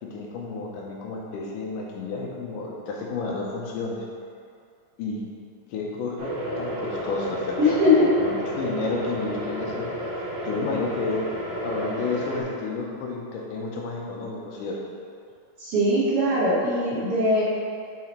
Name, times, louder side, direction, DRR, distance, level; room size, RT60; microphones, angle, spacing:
voice 1, 0.0-4.1 5.0-5.2 5.7-7.8 8.2-11.3 11.6-14.8, left 3 dB, 85° left, -1 dB, 2.4 m, -31 dB
sound 1, 6.2-12.4, equal, 75° right, 1.0 m, -32 dB
voice 2, 7.6-8.1 15.6-17.4, left 1 dB, 50° right, -10 dB, 2.2 m, -21 dB
6.3 x 4.1 x 4.3 m, 2.4 s
omnidirectional pair, 3.7 m